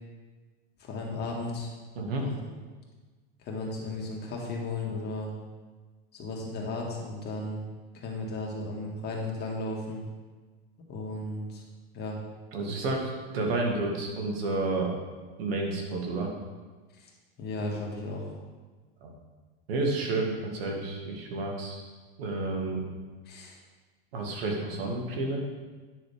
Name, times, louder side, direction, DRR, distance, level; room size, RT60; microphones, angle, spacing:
voice 1, 0.8-1.7 2.2-2.3 3.4-5.3 6.1-7.6 7.9-10.0 10.9-11.6 11.9-12.2 16.9-17.1 17.4-18.3 23.3-23.6, left 2 dB, 35° left, -1 dB, 1.9 m, -35 dB
voice 2, 12.5-14.9 15.4-16.3 19.0-19.1 19.7-21.8 22.2-22.9 24.1-25.4, right 2 dB, 80° right, 0 dB, 1.9 m, -30 dB
9.6 x 6.4 x 3.5 m, 1.4 s
supercardioid pair, 125°, 30 cm